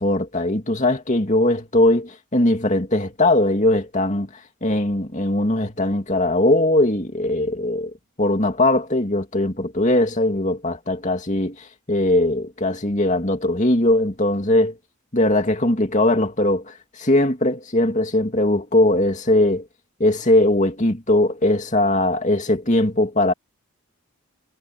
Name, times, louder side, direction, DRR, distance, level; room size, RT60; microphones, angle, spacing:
voice 1, 0.0-4.3 4.6-7.9 8.2-14.8 15.1-19.7 20.0-23.3, left 1 dB, 35° left, 2.5 m, -20 dB
head